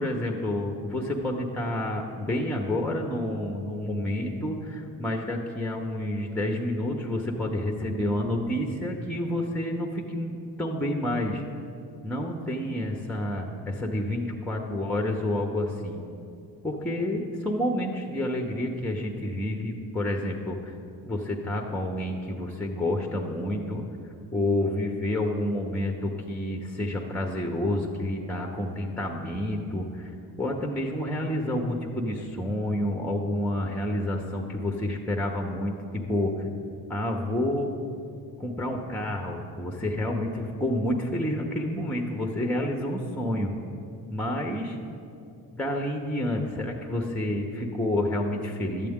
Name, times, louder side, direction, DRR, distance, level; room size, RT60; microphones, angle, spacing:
voice 1, 0.0-11.4 12.0-16.0 16.6-20.7 21.1-23.8 24.3-30.1 30.4-36.5 36.9-37.7 38.4-43.5 44.1-44.8 45.6-48.9, left 1 dB, 5° left, 2 dB, 0.8 m, -29 dB
11.5 x 7.5 x 3.6 m, 2.5 s
cardioid pair, 75°, 42 cm